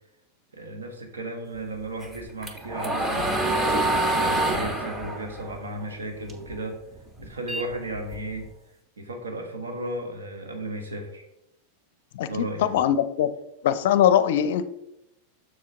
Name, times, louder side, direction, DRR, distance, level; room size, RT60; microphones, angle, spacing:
voice 1, 0.5-6.8 7.2-8.5 9.0-11.3 12.3-12.8, right 1 dB, 70° right, 4 dB, 1.3 m, -35 dB
sound 1, 2.0-6.5 6.9-8.5, right 1 dB, 15° right, 1.0 m, -26 dB
voice 2, 12.1-13.3 13.6-14.7, left 10 dB, 55° left, 13 dB, 0.5 m, -21 dB
7.4 x 6.4 x 3.3 m, 0.85 s
figure-of-eight pair, 90°, 0 cm